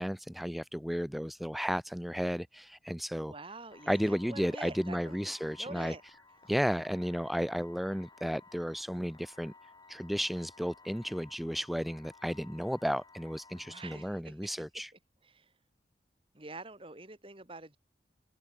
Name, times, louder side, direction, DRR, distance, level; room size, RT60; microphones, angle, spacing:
voice 1, 0.0-3.3 3.9-6.0 6.5-9.5 9.9-14.9, equal, ahead, 0.7 m, -33 dB
voice 2, 3.3-5.2 5.6-6.0 13.5-14.3 15.3-15.4 16.3-17.8, right 2 dB, 30° right, 2.2 m, -46 dB
sound 1, 3.7-14.2, left 3 dB, 25° left, 5.4 m, -57 dB
open air
head